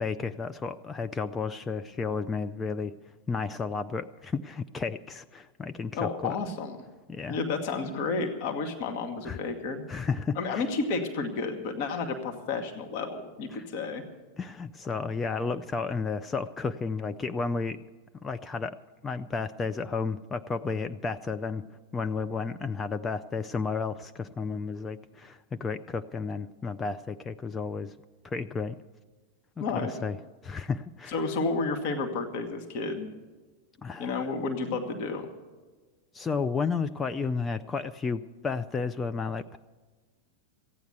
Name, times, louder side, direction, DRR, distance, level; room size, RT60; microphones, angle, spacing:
voice 1, 0.0-2.9 3.3-6.4 7.1-7.4 9.2-9.4 9.9-10.7 13.5-13.7 14.4-17.8 18.2-18.8 19.0-21.6 21.9-27.9 28.2-28.7 29.6-30.2 30.4-31.2 33.8-34.3 36.1-39.6, left 4 dB, 15° left, 9 dB, 0.4 m, -32 dB
voice 2, 5.9-6.8 7.3-9.8 10.3-14.0 29.6-29.9 31.1-33.1 34.0-35.3, left 4 dB, 45° left, 4 dB, 1.5 m, -31 dB
15.0 x 9.3 x 7.9 m, 1.4 s
figure-of-eight pair, 90°, 0 cm